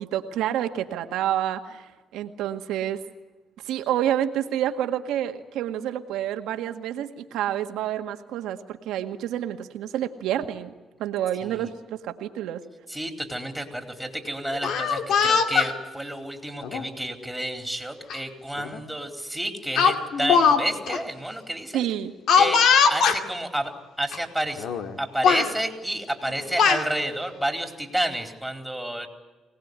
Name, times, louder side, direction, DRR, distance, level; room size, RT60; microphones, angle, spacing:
voice 1, 0.0-3.0 3.6-10.7 11.0-12.6 21.7-22.1, right 11 dB, 90° right, 6 dB, 1.8 m, -28 dB
voice 2, 12.9-21.8 22.3-22.6 22.9-23.7 24.0-24.7 25.0-29.1, right 1 dB, 5° right, 4 dB, 4.4 m, -30 dB
Speech, 14.5-15.7 16.6-16.8 18.1-18.2 18.6-18.8 19.8-20.6 20.9-21.0 22.3-23.2 24.1-24.2 24.6-24.9 25.2-25.5 26.3-26.8, left 6 dB, 75° left, 2.4 m, -20 dB
25.0 x 19.0 x 9.7 m, 1.2 s
cardioid pair, 90°, 0 cm